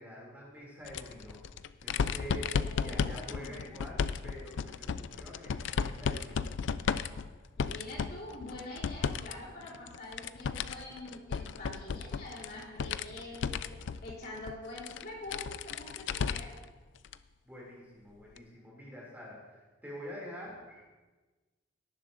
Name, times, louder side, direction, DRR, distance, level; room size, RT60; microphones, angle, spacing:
voice 1, 0.0-1.4 1.8-6.5 17.4-20.8, equal, 10° right, -4 dB, 2.7 m, -46 dB
sound 1, 0.8-9.3 9.6-16.6 17.0-17.2 18.4-18.5, left 6 dB, 65° left, 0.4 m, -35 dB
voice 2, 2.6-3.9 7.6-16.5, left 1 dB, 50° left, -4 dB, 3.4 m, -45 dB
18.0 x 10.5 x 2.6 m, 1.3 s
head